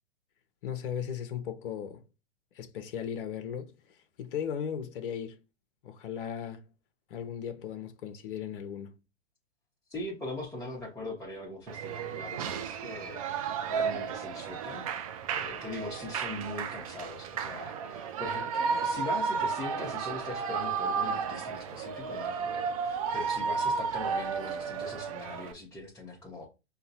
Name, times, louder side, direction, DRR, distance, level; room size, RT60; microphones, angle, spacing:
voice 1, 0.6-2.0 2.5-5.4 5.8-6.7 7.1-9.0, left 8 dB, 50° left, 0.7 m, -37 dB
voice 2, 9.9-13.2 13.7-14.9 15.3-26.5, left 2 dB, 5° left, 0.9 m, -41 dB
Shout / Cheering, 11.7-25.5, right 6 dB, 35° right, 0.4 m, -33 dB
5.5 x 2.2 x 2.7 m
hypercardioid pair, 120°, 35 cm